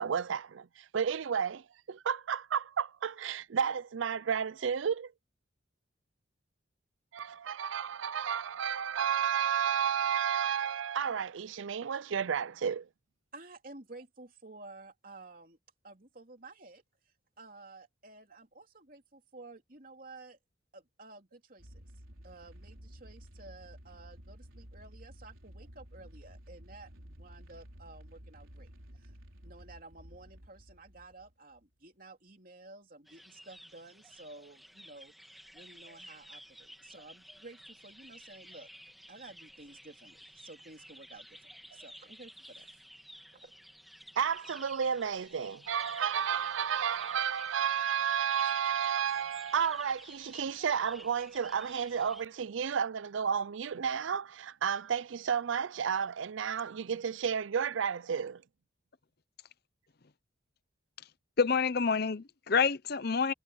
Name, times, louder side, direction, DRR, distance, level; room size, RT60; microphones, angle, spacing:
voice 1, 0.0-5.1 7.1-12.9 44.2-58.4, right 7 dB, 75° right, 0.5 m, -32 dB
voice 2, 13.3-15.6 15.8-16.8 17.4-20.4 20.7-21.8 22.2-28.7 28.9-29.1 29.4-38.7 39.1-42.8 43.3-43.5, right 2 dB, 45° right, 3.2 m, -52 dB
sound 1, 21.6-31.7, equal, 90° right, 4.5 m, -52 dB
sound 2, 33.0-52.2, equal, ahead, 2.3 m, -53 dB
voice 3, 61.4-63.3, left 5 dB, 50° left, 0.7 m, -28 dB
head